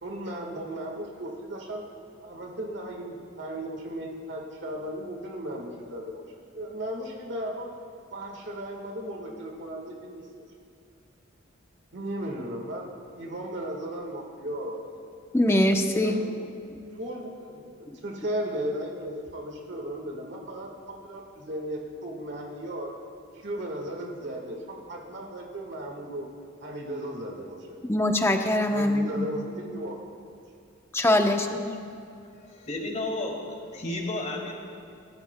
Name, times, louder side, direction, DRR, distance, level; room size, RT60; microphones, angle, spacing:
voice 1, 0.0-1.8 2.2-6.3 6.5-7.7 8.1-10.5 11.9-14.8 16.0-16.3 16.9-22.9 23.3-26.3 26.6-27.8 28.6-30.2, right 1 dB, 60° right, 1 dB, 1.6 m, -36 dB
voice 2, 15.3-16.2 27.9-29.3 30.9-31.6, left 1 dB, 15° left, 4 dB, 0.8 m, -23 dB
voice 3, 32.4-33.4 33.7-34.6, left 2 dB, 35° left, 0 dB, 2.0 m, -32 dB
26.0 x 13.5 x 2.2 m, 2.4 s
head